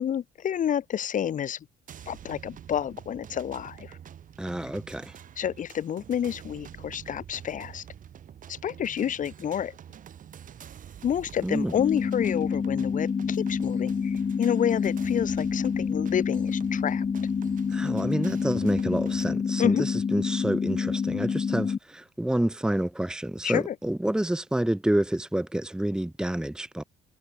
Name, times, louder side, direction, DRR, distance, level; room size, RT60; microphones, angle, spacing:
voice 1, 0.0-1.7 2.1-4.0 5.4-7.8 8.5-9.8 11.0-17.1 19.6-20.0 23.4-23.8, left 9 dB, 50° left, 3.5 m, -29 dB
sound 1, 1.9-19.3, right 9 dB, 50° right, 7.8 m, -47 dB
voice 2, 4.4-5.2 11.4-11.7 17.7-26.8, right 1 dB, 5° right, 1.4 m, -28 dB
sound 2, 11.8-21.8, left 6 dB, 30° left, 1.7 m, -28 dB
cardioid pair, 110°, 17 cm